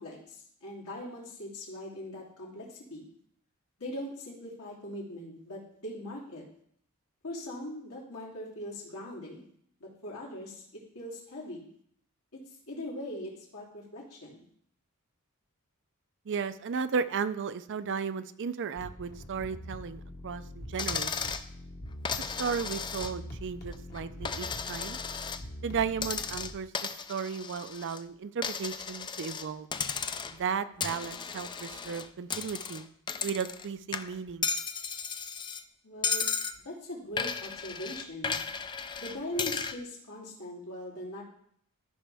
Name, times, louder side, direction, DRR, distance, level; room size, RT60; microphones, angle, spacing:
voice 1, 0.0-3.0 3.8-6.4 7.2-9.5 9.8-10.6 10.9-11.7 12.3-12.4 12.7-14.4 35.8-36.2 36.6-38.4 39.0-41.2, left 1 dB, 80° left, -4 dB, 3.0 m, -41 dB
voice 2, 16.3-21.3 22.2-25.0 25.6-29.7 30.3-32.9 33.2-34.5, right 6 dB, 55° right, 13 dB, 0.4 m, -35 dB
sound 1, 18.8-26.5, left 1 dB, 45° left, 1.2 m, -43 dB
Coin (dropping), 20.8-21.5 22.1-23.4 23.7-25.4 26.0-28.0 28.4-29.5 29.7-30.4 30.8-33.7 33.9-35.6 36.0-36.6 37.2-39.8, left 5 dB, 20° left, 0.3 m, -35 dB
13.5 x 5.5 x 3.4 m, 0.67 s
head